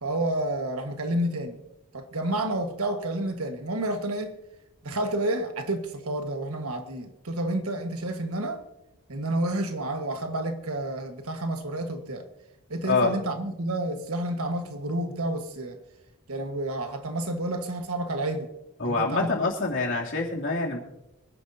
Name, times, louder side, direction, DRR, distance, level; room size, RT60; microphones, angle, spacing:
voice 1, 0.0-1.6 1.9-4.3 4.8-8.6 9.1-12.3 12.7-15.8 16.3-18.5 18.8-19.5, right 1 dB, 70° right, 1.5 m, -30 dB
voice 2, 18.8-20.8, left 3 dB, 60° left, 2.8 m, -26 dB
25.0 x 10.5 x 2.7 m
head